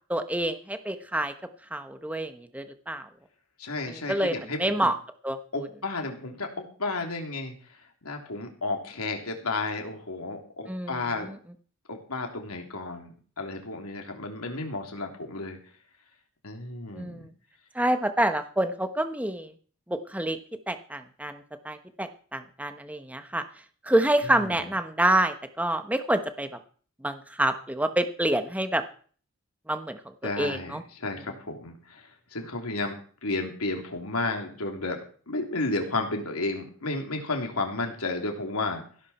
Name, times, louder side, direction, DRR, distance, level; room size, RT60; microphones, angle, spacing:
voice 1, 0.1-1.3 1.7-3.1 3.9-4.9 5.2-5.7 10.7-11.4 16.9-17.3 17.7-19.5 19.9-20.4 20.7-23.4 23.8-26.5 27.0-28.8 29.7-30.0 30.4-30.8, right 1 dB, 5° right, 8 dB, 1.0 m, -27 dB
voice 2, 3.6-4.9 5.5-7.5 8.0-11.3 11.9-15.6 16.4-17.3 24.2-24.7 30.2-32.9 33.2-35.0 35.3-38.8, left 2 dB, 90° left, 3 dB, 3.3 m, -32 dB
16.5 x 11.5 x 4.4 m, 0.43 s
head